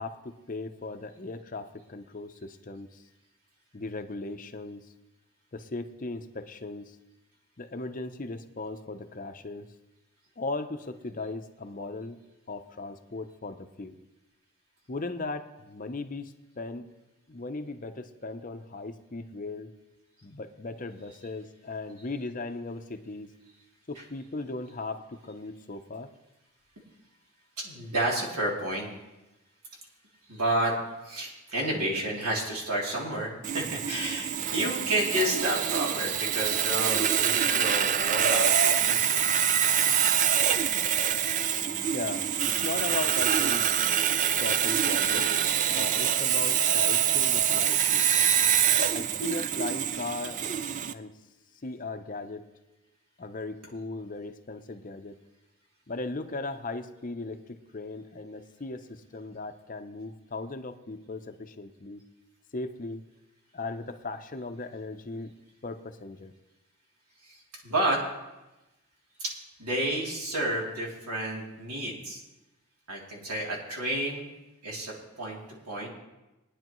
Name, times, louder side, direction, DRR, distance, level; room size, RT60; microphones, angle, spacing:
voice 1, 0.0-3.0 3.7-4.9 5.5-7.0 7.6-9.7 10.4-12.2 12.5-14.0 14.9-16.9 17.3-19.7 20.2-23.3 23.9-26.1 34.5-34.8 39.9-40.1 41.9-43.7 44.4-45.4 45.7-48.1 48.9-50.4 50.9-51.2 51.6-52.5 53.2-55.2 55.9-62.0 62.5-63.0 63.5-65.3 65.6-66.3, left 3 dB, 35° left, 8 dB, 0.6 m, -37 dB
voice 2, 27.6-28.9 30.3-30.8 31.0-39.2 67.2-67.4 67.6-68.0 69.2-69.3 69.6-72.2 72.9-74.3 74.6-75.4 75.7-75.9, right 1 dB, 85° right, -3 dB, 3.0 m, -30 dB
Sawing, 33.4-50.9, right 9 dB, 35° right, 0.3 m, -25 dB
20.0 x 10.0 x 3.1 m, 1.0 s
head